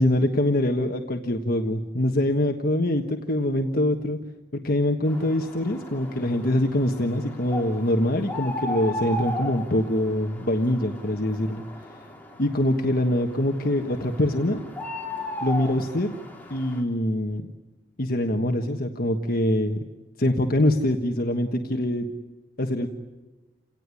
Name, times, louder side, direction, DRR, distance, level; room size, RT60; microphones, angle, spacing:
voice 1, 0.0-4.2 4.5-11.6 12.4-14.6 15.4-16.1 16.5-17.5 18.0-19.8 20.2-22.1 22.6-22.9, left 1 dB, 55° left, 4 dB, 1.4 m, -24 dB
sound 1, 5.1-16.8, left 1 dB, 10° left, 4.0 m, -36 dB
29.5 x 18.0 x 9.9 m, 1.2 s
head